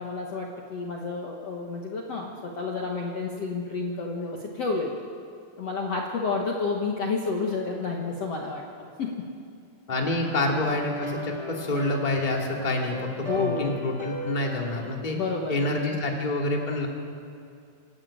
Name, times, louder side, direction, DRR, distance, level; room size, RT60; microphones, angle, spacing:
voice 1, 0.0-5.0 5.6-8.6 9.0-9.2 13.3-13.7 15.1-16.0, left 4 dB, 55° left, 0 dB, 1.9 m, -30 dB
voice 2, 9.9-15.2 15.5-16.9, left 2 dB, 15° left, 0 dB, 1.8 m, -27 dB
sound 1, 9.9-14.9, left 1 dB, 10° right, 3.7 m, -37 dB
27.0 x 12.0 x 8.9 m, 2.5 s
omnidirectional pair, 4.7 m